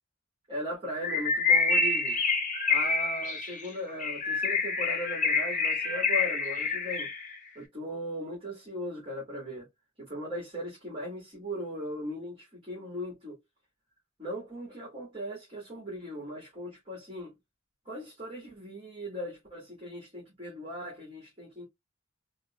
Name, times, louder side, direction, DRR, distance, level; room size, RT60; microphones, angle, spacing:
voice 1, 0.5-2.2 2.7-7.1 7.6-9.7 10.0-13.4 14.2-17.3 17.9-21.7, equal, 30° right, 2.1 m, -38 dB
Bird, 1.0-7.3, left 4 dB, 40° left, 1.0 m, -27 dB
4.1 x 3.1 x 2.3 m
head